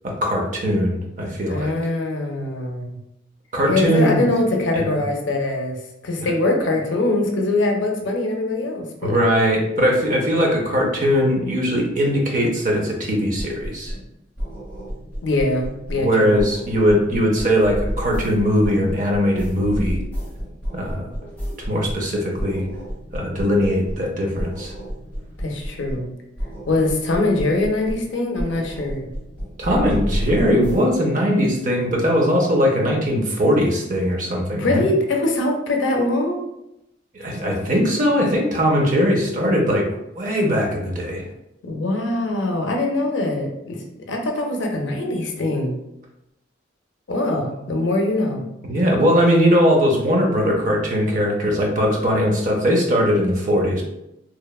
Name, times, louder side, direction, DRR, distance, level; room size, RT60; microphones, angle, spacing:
voice 1, 0.0-1.7 3.5-4.2 4.7-5.0 6.2-6.3 9.0-13.9 16.0-20.0 20.7-21.1 21.6-22.6 23.1-24.7 29.6-34.9 37.1-39.9 40.1-41.2 48.7-53.8, equal, 40° right, 0 dB, 0.5 m, -20 dB
voice 2, 1.5-3.0 3.7-9.2 15.2-16.4 25.4-26.1 26.7-29.1 34.5-36.4 41.6-43.8 44.1-45.8 47.1-48.4, left 2 dB, 75° left, 2 dB, 0.5 m, -22 dB
sound 1, 13.4-14.1 14.4-16.1 16.4-22.1 22.4-24.1 24.4-26.1 26.4-28.1 28.4-30.8, equal, 10° left, 0.9 m, -31 dB
2.8 x 2.1 x 2.3 m, 0.85 s
head